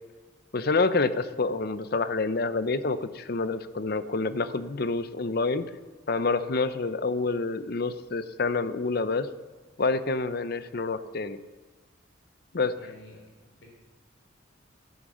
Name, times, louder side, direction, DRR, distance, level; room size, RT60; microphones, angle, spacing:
voice 1, 0.5-5.6 6.1-9.3 9.8-11.4 12.5-12.7, left 3 dB, 50° left, 13 dB, 0.6 m, -27 dB
voice 2, 12.8-13.7, left 1 dB, 75° left, 0 dB, 3.8 m, -51 dB
12.5 x 9.2 x 6.2 m, 1.3 s
head